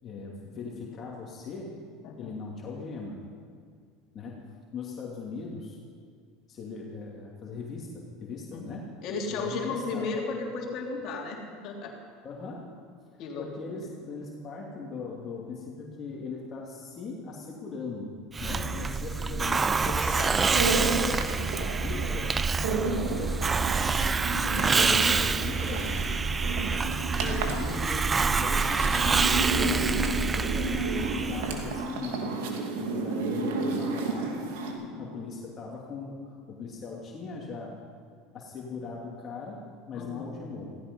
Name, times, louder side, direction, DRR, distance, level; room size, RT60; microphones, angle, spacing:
voice 1, 0.0-1.8 2.2-3.3 4.1-5.8 6.5-8.9 9.3-10.1 12.2-12.7 13.1-20.2 21.1-23.6 24.4-26.1 27.2-32.3 32.8-34.4 35.0-37.8 38.3-40.8, left 4 dB, 40° left, -2 dB, 2.8 m, -39 dB
voice 2, 2.0-2.4 8.5-11.9 13.2-13.8 18.4-19.0 19.8-20.4 20.8-21.1 30.5-30.8 34.8-35.1 39.9-40.3, left 4 dB, 55° left, 0 dB, 3.1 m, -36 dB
Hiss, 18.3-31.8, right 4 dB, 20° right, 0.5 m, -27 dB
sound 1, 20.2-34.7, right 3 dB, 80° right, 2.6 m, -32 dB
16.5 x 15.5 x 5.5 m, 2.2 s
supercardioid pair, 105°, 0 cm